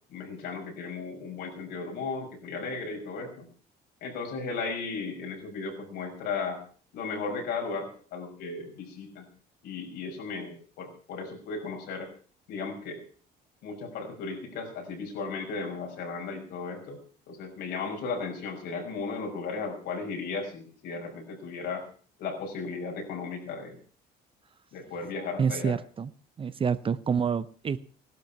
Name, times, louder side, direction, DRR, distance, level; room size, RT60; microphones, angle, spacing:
voice 1, 0.1-3.5 4.0-6.6 6.9-9.2 9.6-12.1 12.5-13.0 13.6-17.0 17.3-21.9 22.2-23.8 24.7-25.7, left 4 dB, 80° left, 1 dB, 6.0 m, -35 dB
voice 2, 25.4-26.1 26.4-27.8, right 6 dB, 30° right, 15 dB, 0.8 m, -27 dB
16.5 x 12.0 x 5.9 m, 0.43 s
cardioid pair, 110°, 17 cm